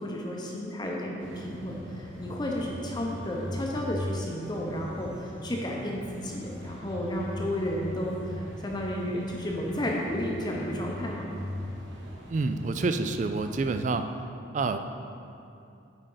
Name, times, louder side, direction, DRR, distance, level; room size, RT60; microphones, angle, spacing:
voice 1, 0.0-11.3, equal, 20° left, -2 dB, 0.7 m, -32 dB
sound 1, 1.2-13.8, left 1 dB, 70° right, 1.0 m, -40 dB
voice 2, 12.3-14.1 14.5-14.8, right 3 dB, 40° right, 9 dB, 0.3 m, -28 dB
8.4 x 5.0 x 3.9 m, 2.6 s
head